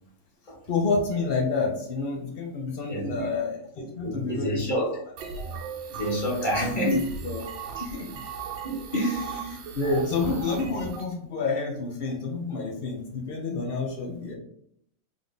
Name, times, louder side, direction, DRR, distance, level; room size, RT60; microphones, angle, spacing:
voice 1, 0.7-4.7 6.6-7.4 7.8-8.1 8.9-14.3, left 3 dB, 85° left, 0 dB, 0.5 m, -29 dB
voice 2, 2.9-3.2 4.0-4.9 5.9-6.9 7.8-7.9 8.6-9.1, equal, 25° left, -4 dB, 1.5 m, -29 dB
sound 1, 5.2-11.0, right 6 dB, 75° right, 1.5 m, -37 dB
3.7 x 3.6 x 3.9 m, 0.69 s
omnidirectional pair, 2.2 m